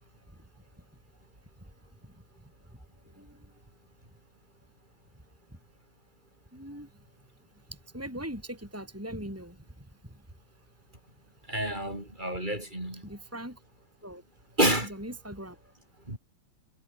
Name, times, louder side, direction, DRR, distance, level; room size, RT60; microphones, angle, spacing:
voice 1, 3.2-3.5 6.5-6.9 7.7-9.9 13.0-13.6 14.0-14.2 14.8-15.6, right 1 dB, 5° right, 5.4 m, -40 dB
voice 2, 11.5-13.0 14.6-14.9 16.1-16.2, right 1 dB, 20° right, 6.6 m, -28 dB
omnidirectional pair, 2.2 m